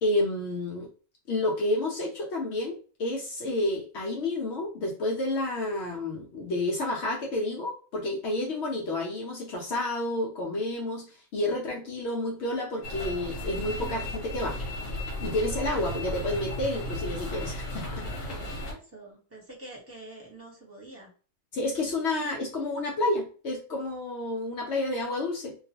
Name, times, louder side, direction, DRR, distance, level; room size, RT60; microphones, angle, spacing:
voice 1, 0.0-0.9 1.3-14.6 15.2-18.0 21.5-25.6, left 1 dB, 65° left, -1 dB, 0.8 m, -30 dB
sound 1, 12.8-18.7, left 1 dB, 85° left, 1.1 m, -35 dB
voice 2, 18.0-21.1, right 2 dB, 10° right, -4 dB, 1.0 m, -46 dB
2.3 x 2.3 x 2.8 m, 0.38 s
omnidirectional pair, 1.3 m